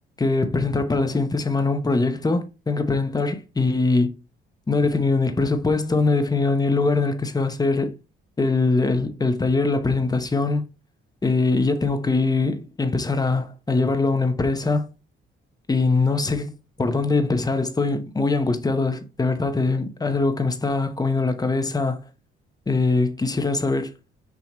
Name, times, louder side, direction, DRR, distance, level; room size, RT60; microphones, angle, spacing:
voice 1, 0.2-4.1 4.7-7.9 8.4-10.7 11.2-14.9 15.7-16.5 16.8-22.0 22.7-23.9, left 3 dB, 20° left, 0.9 m, -22 dB
5.9 x 2.9 x 3.0 m
cardioid pair, 90°, 20 cm